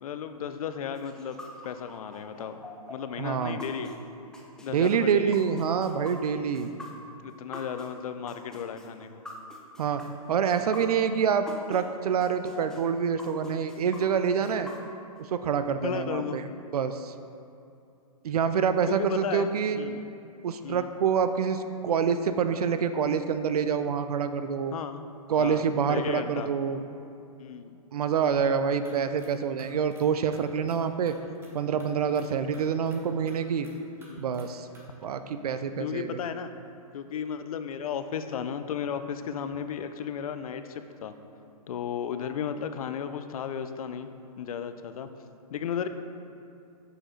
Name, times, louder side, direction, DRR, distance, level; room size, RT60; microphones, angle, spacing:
voice 1, 0.0-1.4 1.6-2.6 2.9-3.9 4.6-5.4 7.2-9.2 15.8-16.4 18.9-20.0 20.6-20.9 24.7-25.1 25.4-26.5 27.4-27.8 32.1-32.4 34.0-34.4 35.0-35.1 35.8-36.5 36.9-41.1 41.7-44.1 44.4-45.1 45.5-45.9, left 7 dB, 70° left, 9 dB, 0.5 m, -34 dB
sound 1, 1.0-11.8 12.2-15.2, left 2 dB, 5° left, 0.4 m, -44 dB
voice 2, 3.2-3.6 4.7-6.7 9.8-10.0 10.3-14.7 15.3-16.4 16.7-17.1 18.2-19.8 20.4-24.7 25.3-26.8 27.9-31.1 31.5-33.7 34.2-34.7 35.0-36.2, right 7 dB, 80° right, 10 dB, 0.4 m, -26 dB
sound 2, 28.8-29.3 29.6-30.0 30.3-31.5 31.8-32.3 32.5-33.0 33.3-33.7 34.0-34.5 34.7-34.8, right 2 dB, 10° right, 0.8 m, -54 dB
6.4 x 5.0 x 3.7 m, 2.7 s
hypercardioid pair, 135°, 19 cm